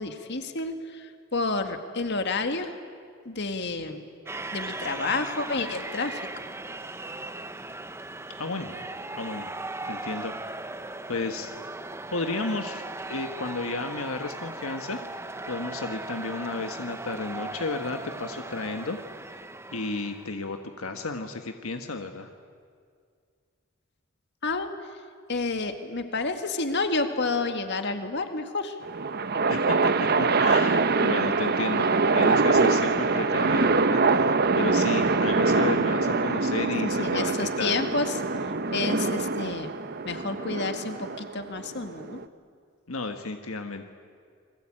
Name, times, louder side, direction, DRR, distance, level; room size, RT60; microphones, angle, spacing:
voice 1, 0.0-2.8 3.3-4.0 4.5-6.3 24.4-24.7 25.3-28.8 36.8-39.7 40.0-42.2, left 3 dB, 55° left, 7 dB, 2.0 m, -30 dB
sound 1, 4.3-20.5, right 2 dB, 10° right, 0.8 m, -38 dB
voice 2, 8.4-8.8 9.2-9.5 9.8-10.4 11.1-11.5 12.1-12.8 13.1-15.0 15.4-19.0 19.7-22.3 29.5-37.8 42.9-43.9, left 3 dB, 85° left, 6 dB, 1.4 m, -32 dB
sound 2, 28.8-42.2, right 4 dB, 50° right, 0.9 m, -24 dB
29.0 x 21.5 x 8.9 m, 2.1 s
head